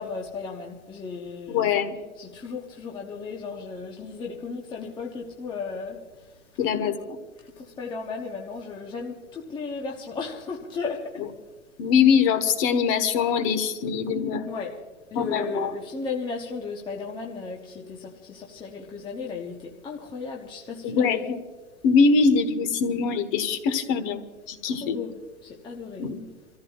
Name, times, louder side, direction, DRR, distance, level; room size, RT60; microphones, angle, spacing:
voice 1, 0.0-1.7 2.2-6.0 7.6-11.2 14.5-14.7 15.1-21.4 24.8-25.1 25.4-26.1, left 4 dB, 10° left, 0 dB, 0.8 m, -35 dB
voice 2, 1.5-1.9 6.6-7.2 11.8-14.5 15.1-15.7 20.8-21.4 21.8-24.2 24.5-25.0 26.0-26.1, left 5 dB, 30° left, 8 dB, 1.2 m, -23 dB
28.0 x 14.5 x 2.4 m, 1.3 s
hypercardioid pair, 140°, 41 cm